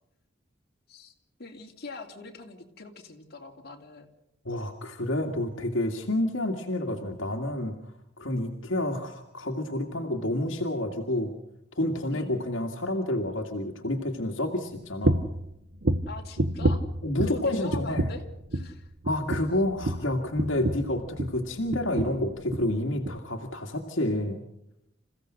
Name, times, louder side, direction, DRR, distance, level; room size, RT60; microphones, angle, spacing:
voice 1, 1.4-4.1 12.1-12.4 16.1-16.8 17.2-18.2 18.5-18.9, left 3 dB, 55° left, 1 dB, 2.9 m, -42 dB
voice 2, 4.4-7.8 8.2-11.3 11.8-15.2 17.0-18.1 19.0-24.4, left 1 dB, 80° left, 3 dB, 2.1 m, -29 dB
sound 1, 15.0-15.4 15.8-17.4 17.7-18.3 18.5-18.8 19.0-21.4 21.7-22.2 22.5-22.7 23.0-23.2, right 1 dB, 60° right, 1.1 m, -28 dB
28.0 x 16.0 x 6.4 m, 0.83 s
head